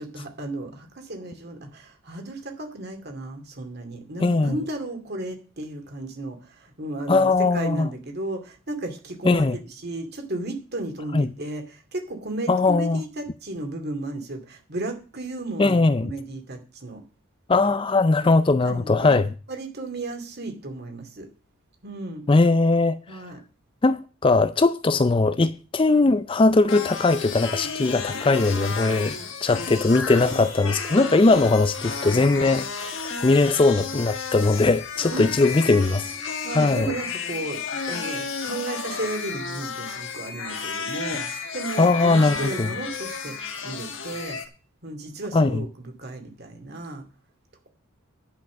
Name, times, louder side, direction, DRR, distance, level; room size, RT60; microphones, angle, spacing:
voice 1, 0.0-17.0 18.2-18.3 18.6-19.2 19.5-21.3 21.8-22.3 23.1-23.4 31.3-31.4 35.1-35.3 36.4-43.4 43.6-44.4 44.8-47.0, right 2 dB, 50° right, 2.4 m, -34 dB
voice 2, 4.2-4.6 7.1-7.9 9.2-9.6 11.1-11.3 12.5-13.0 15.6-16.1 17.5-19.3 22.3-23.2 23.8-32.9 33.2-36.1 36.5-36.9 41.8-42.7 45.3-45.7, left 3 dB, 25° left, 0.4 m, -20 dB
sound 1, 26.7-44.5, left 5 dB, 60° left, 1.6 m, -32 dB
10.5 x 5.7 x 7.4 m
head